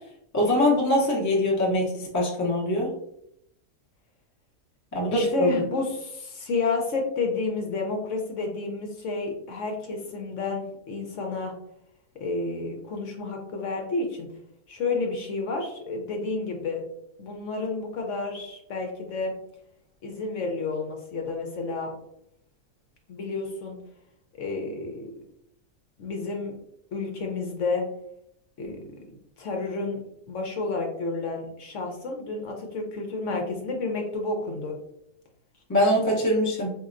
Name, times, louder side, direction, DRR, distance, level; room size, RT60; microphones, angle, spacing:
voice 1, 0.3-2.9 4.9-5.6 35.7-36.7, left 1 dB, 20° left, -3 dB, 0.5 m, -23 dB
voice 2, 5.1-11.5 12.2-14.3 14.7-16.8 17.2-19.3 20.0-21.9 23.1-23.8 24.4-25.1 26.0-26.5 26.9-27.9 28.6-28.8 29.4-30.0 30.3-34.7, left 3 dB, 65° left, 1 dB, 0.9 m, -30 dB
4.1 x 2.7 x 2.4 m, 0.76 s
omnidirectional pair, 1.5 m